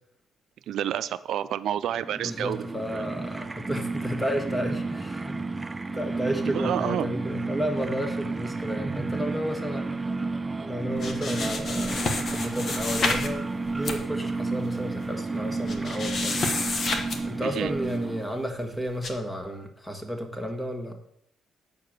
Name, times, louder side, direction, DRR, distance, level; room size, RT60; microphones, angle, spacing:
voice 1, 0.7-3.0 6.5-7.1 17.6-17.7, right 10 dB, 75° right, 14 dB, 0.4 m, -29 dB
sound 1, 1.9-18.5, right 3 dB, 20° right, 0.5 m, -31 dB
voice 2, 2.2-5.4 5.9-10.2 10.6-17.0 17.2-20.9, equal, 10° left, 4 dB, 1.5 m, -32 dB
sound 2, 11.0-13.3 13.7-14.0 14.7-14.8 15.0-15.1 15.7-17.2 17.7-17.9 19.0-19.1, left 3 dB, 50° left, 1.3 m, -29 dB
7.7 x 4.8 x 6.5 m, 0.70 s
cardioid pair, 90°, 0 cm